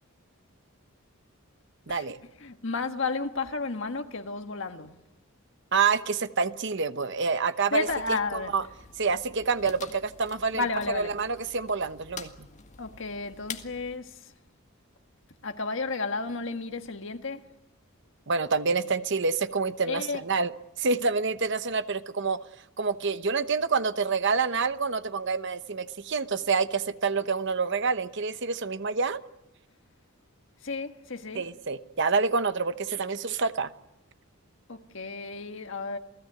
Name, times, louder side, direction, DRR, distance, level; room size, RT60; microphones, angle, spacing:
voice 1, 1.9-2.2 5.7-7.9 8.3-8.6 9.0-10.6 10.9-12.5 18.3-20.5 20.8-22.4 22.8-29.2 31.3-33.7, right 4 dB, 55° right, 0.9 m, -27 dB
voice 2, 2.4-4.9 7.7-8.5 10.5-11.2 12.8-14.3 15.4-17.5 19.8-20.2 30.6-31.4 34.7-36.0, left 3 dB, 60° left, 1.5 m, -32 dB
sound 1, 7.9-14.0, left 5 dB, 35° left, 1.7 m, -46 dB
28.5 x 17.5 x 9.3 m
head